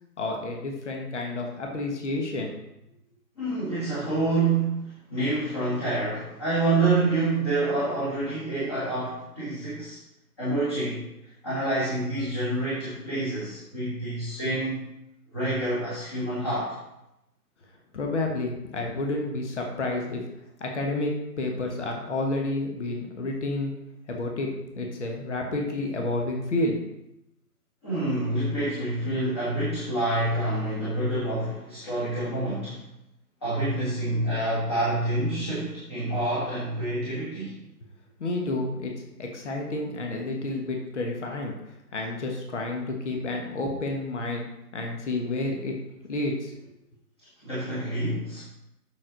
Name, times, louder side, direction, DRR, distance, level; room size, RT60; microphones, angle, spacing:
voice 1, 0.2-2.5 17.9-20.2 20.6-23.7 24.1-26.8 38.2-41.5 41.9-44.4 44.7-45.8 46.1-46.6, left 2 dB, 45° left, 1 dB, 1.4 m, -30 dB
voice 2, 3.4-10.0 10.4-11.0 11.4-14.8 15.3-16.8 27.8-32.8 33.4-37.5 47.4-48.4, right 2 dB, 15° left, -10 dB, 1.5 m, -27 dB
7.4 x 6.4 x 3.9 m, 0.87 s
hypercardioid pair, 170°, 47 cm